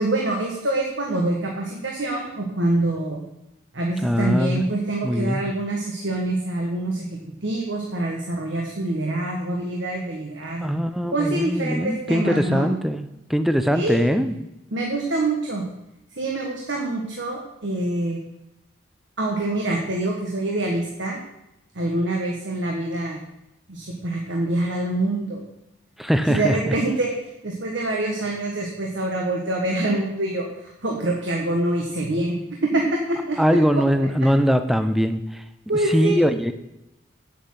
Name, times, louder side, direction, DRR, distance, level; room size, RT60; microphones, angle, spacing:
voice 1, 0.0-3.2 3.7-7.1 7.4-10.8 11.1-12.7 13.7-14.1 14.7-15.7 16.2-18.2 19.2-21.2 21.7-23.2 23.7-25.4 26.3-27.1 27.4-30.5 30.8-32.4 32.6-34.1 35.7-36.2, right 2 dB, 70° right, 0 dB, 1.6 m, -25 dB
voice 2, 4.0-4.6 5.0-5.4 10.6-14.4 26.0-26.8 33.4-35.4 35.9-36.5, equal, ahead, 9 dB, 0.5 m, -21 dB
8.9 x 8.4 x 5.8 m, 0.89 s
head